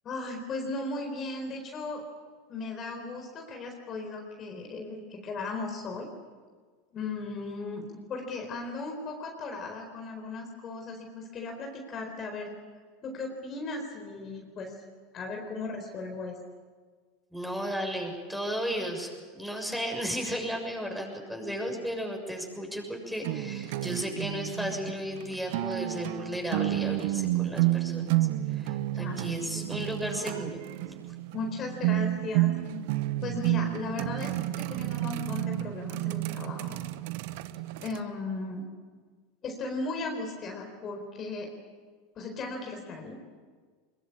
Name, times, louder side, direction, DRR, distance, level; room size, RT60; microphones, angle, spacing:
voice 1, 0.0-2.1 2.5-6.1 6.9-12.5 13.0-14.7 15.1-16.4 28.9-29.2 29.5-29.9 31.3-32.5 33.2-34.3 34.6-36.8 37.8-38.6 39.4-41.5 42.2-43.2, left 3 dB, 35° left, 3 dB, 4.4 m, -36 dB
voice 2, 17.3-19.1 19.4-28.1 28.5-30.5, equal, ahead, 2 dB, 7.1 m, -34 dB
sound 1, 23.2-38.0, right 16 dB, 65° right, 1.0 m, -30 dB
23.0 x 22.5 x 8.7 m, 1.5 s
hypercardioid pair, 85°, 0 cm